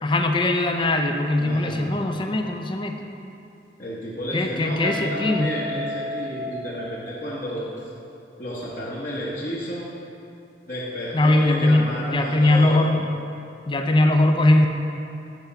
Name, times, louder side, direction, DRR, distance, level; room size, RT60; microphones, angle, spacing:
voice 1, 0.0-3.1 4.3-5.5 11.1-13.0 13.7-14.7, left 2 dB, 25° left, 4 dB, 0.5 m, -20 dB
voice 2, 1.4-2.1 3.8-7.9 8.4-9.9 10.7-13.0, equal, 45° left, -7 dB, 1.1 m, -31 dB
Guitar, 4.8-7.7, equal, 55° right, 0.6 m, -33 dB
8.2 x 5.1 x 5.7 m, 2.7 s
head